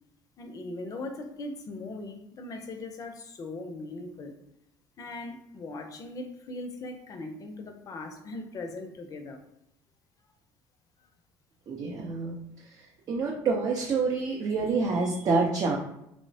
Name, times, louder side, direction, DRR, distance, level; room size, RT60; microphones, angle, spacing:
voice 1, 0.4-4.4 5.0-9.4, left 2 dB, 40° left, 5 dB, 0.4 m, -39 dB
voice 2, 11.7-12.4 13.1-15.8, right 4 dB, 50° right, -1 dB, 0.5 m, -27 dB
2.9 x 2.0 x 2.6 m, 0.80 s
cardioid pair, 100°, 9 cm